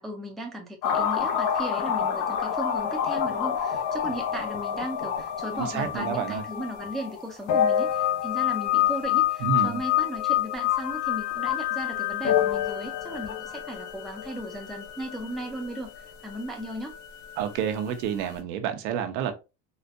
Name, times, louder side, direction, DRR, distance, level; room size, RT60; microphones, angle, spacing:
voice 1, 0.0-16.9, right 1 dB, ahead, 0.4 m, -36 dB
sound 1, 0.8-18.0 18.3-18.4, left 10 dB, 85° left, 0.8 m, -28 dB
voice 2, 5.6-6.4 9.4-9.8 17.4-19.3, right 8 dB, 90° right, 0.8 m, -29 dB
4.1 x 2.2 x 2.5 m
cardioid pair, 130°, 45 cm